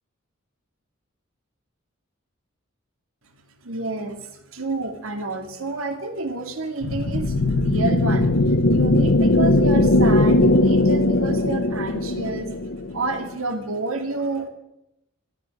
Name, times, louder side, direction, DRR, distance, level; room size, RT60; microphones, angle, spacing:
voice 1, 3.6-12.6 12.9-14.5, right 3 dB, 80° right, 5 dB, 2.3 m, -29 dB
sound 1, 6.8-13.3, left 2 dB, 65° left, 0.9 m, -19 dB
13.5 x 13.0 x 6.5 m, 0.87 s
head